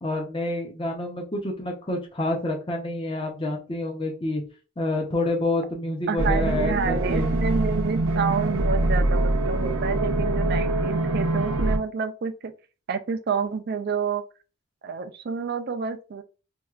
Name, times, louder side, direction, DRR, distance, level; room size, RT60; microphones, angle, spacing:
voice 1, 0.0-4.4 4.8-7.3, left 2 dB, 25° left, 0.6 m, -28 dB
voice 2, 6.1-12.5 12.9-14.2 14.8-16.2, right 5 dB, 45° right, 0.3 m, -29 dB
sound 1, 6.2-11.8, right 2 dB, 80° right, 0.6 m, -24 dB
4.4 x 2.3 x 2.3 m
head